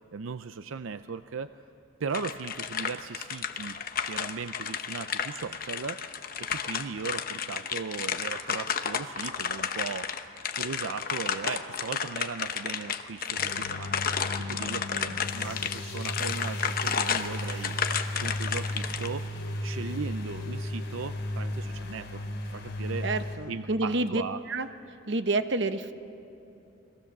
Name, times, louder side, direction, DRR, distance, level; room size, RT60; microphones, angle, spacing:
voice 1, 0.1-1.5 2.0-3.8 4.0-10.2 10.5-17.8 18.2-19.3 19.6-22.2 22.5-23.1 23.5-24.4, right 5 dB, 85° right, 11 dB, 0.5 m, -38 dB
sound 1, 2.1-19.1, left 7 dB, 45° left, 0.9 m, -32 dB
sound 2, 13.4-23.4, left 1 dB, 65° left, 3.9 m, -35 dB
voice 2, 23.0-24.2 24.5-24.7 25.1-25.9, right 2 dB, 60° right, 9 dB, 1.0 m, -28 dB
30.0 x 21.0 x 7.3 m, 2.8 s
head